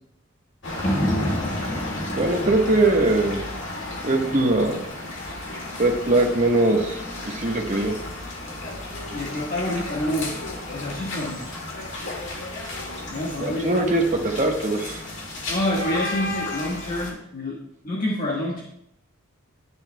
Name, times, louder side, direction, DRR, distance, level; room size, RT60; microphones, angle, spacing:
sound 1, 0.6-17.1, left 2 dB, 60° left, 2.0 m, -33 dB
sound 2, 0.8-9.0 9.5-9.6, equal, 15° left, 1.2 m, -32 dB
voice 1, 2.1-3.4 4.0-4.8 5.8-7.9 13.4-15.0, right 2 dB, 35° right, 1 dB, 1.2 m, -21 dB
voice 2, 9.1-10.3 10.7-11.4 13.1-13.7 15.5-17.6 17.8-18.6, left 1 dB, 40° left, -4 dB, 1.5 m, -27 dB
10.5 x 9.7 x 2.2 m, 0.72 s
head